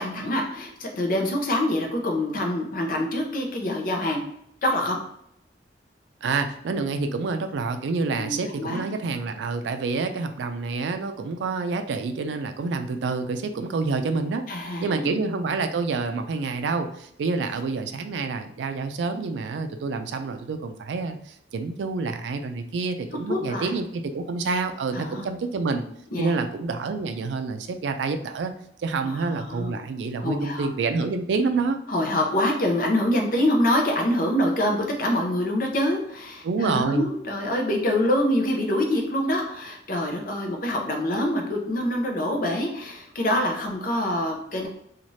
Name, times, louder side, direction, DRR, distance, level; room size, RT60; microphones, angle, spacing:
voice 1, 0.0-4.2 4.6-5.0 8.2-8.8 14.5-15.2 23.3-23.7 24.9-25.3 26.1-26.3 29.0-29.8 30.2-30.7 31.9-44.7, left 1 dB, 50° left, 2 dB, 0.6 m, -25 dB
voice 2, 6.2-14.4 14.8-25.8 26.2-28.5 28.8-31.8 36.4-37.1, right 4 dB, 80° right, 7 dB, 0.3 m, -28 dB
2.6 x 2.4 x 3.1 m, 0.72 s
head